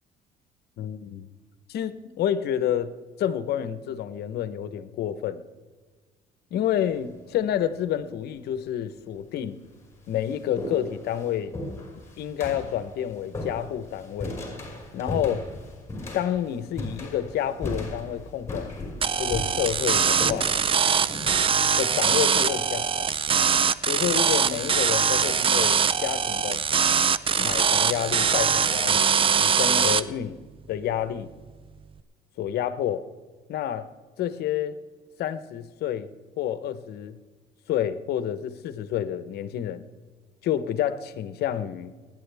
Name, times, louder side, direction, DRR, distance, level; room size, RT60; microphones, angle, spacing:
voice 1, 0.8-1.3 1.7-2.9 3.2-5.4 6.5-9.6 10.1-11.6 12.2-14.4 14.9-15.5 16.1-18.7 19.2-20.5 21.8-23.0 23.9-26.6 27.4-31.3 32.4-33.0 33.5-33.9 34.2-34.8 35.2-36.1 36.4-37.2 37.7-39.8 40.4-41.9, left 10 dB, 70° left, 1.0 m, -29 dB
sound 1, 6.8-7.2 8.2-8.3 9.1-9.2 9.6-23.1, left 1 dB, 15° left, 5.6 m, -37 dB
sound 2, 19.0-30.0, right 7 dB, 30° right, 0.5 m, -22 dB
25.5 x 10.5 x 3.5 m
cardioid pair, 110°, 17 cm